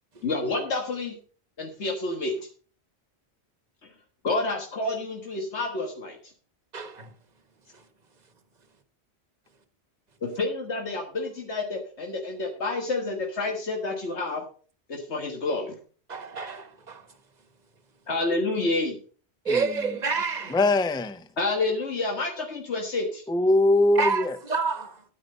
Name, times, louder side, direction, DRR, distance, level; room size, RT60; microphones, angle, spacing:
voice 1, 0.2-1.2 1.6-2.5 4.2-6.2 10.2-14.4 14.9-15.8 18.1-19.0 21.4-23.2, left 2 dB, 85° left, 1.9 m, -29 dB
voice 2, 6.7-7.1 7.7-7.9 16.1-17.2 19.4-20.6 24.0-24.9, right 4 dB, 40° right, 1.3 m, -29 dB
voice 3, 20.5-21.3 23.3-24.4, left 2 dB, 5° left, 0.5 m, -22 dB
9.7 x 9.4 x 5.2 m
omnidirectional pair, 1.1 m